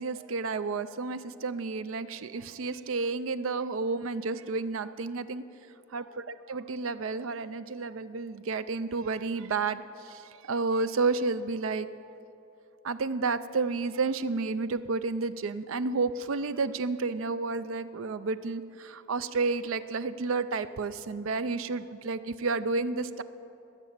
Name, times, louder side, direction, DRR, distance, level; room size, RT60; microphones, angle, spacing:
voice 1, 0.0-5.4 5.9-11.9 12.8-23.2, right 4 dB, 70° right, 13 dB, 0.5 m, -31 dB
20.5 x 6.8 x 7.3 m, 2.8 s
head